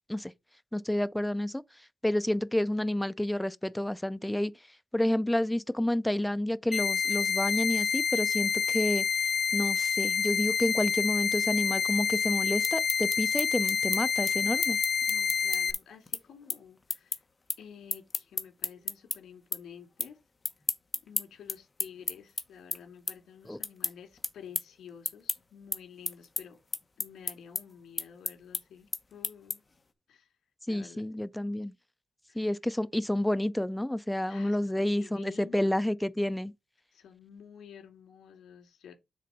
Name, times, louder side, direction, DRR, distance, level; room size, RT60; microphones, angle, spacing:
voice 1, 0.7-1.6 2.0-4.5 4.9-9.1 9.5-14.8 23.5-23.6 30.7-31.7 32.4-36.5, left 1 dB, 5° left, 0.4 m, -29 dB
sound 1, 6.7-15.7, left 7 dB, 50° left, 0.5 m, -28 dB
sound 2, 12.4-19.2 19.5-20.1 20.4-29.8, left 3 dB, 25° left, 1.1 m, -34 dB
voice 2, 15.1-17.2 17.6-20.2 21.0-26.6 27.0-29.6 30.1-30.3 30.7-31.0 32.3-32.5 34.2-35.8 36.9-38.9, left 7 dB, 85° left, 3.0 m, -51 dB
6.7 x 3.8 x 5.2 m
cardioid pair, 130°, 0 cm